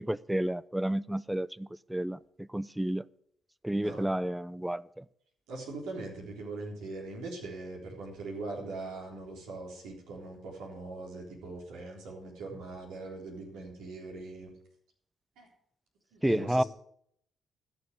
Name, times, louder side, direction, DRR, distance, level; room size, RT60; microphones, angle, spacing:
voice 1, 0.0-3.0 3.6-5.0 16.2-16.6, right 1 dB, 5° right, 20 dB, 0.5 m, -31 dB
voice 2, 5.5-14.5 15.4-15.5 16.1-16.6, right 3 dB, 70° right, -1 dB, 3.7 m, -41 dB
13.5 x 6.8 x 8.1 m, 0.69 s
hypercardioid pair, 45°, 0 cm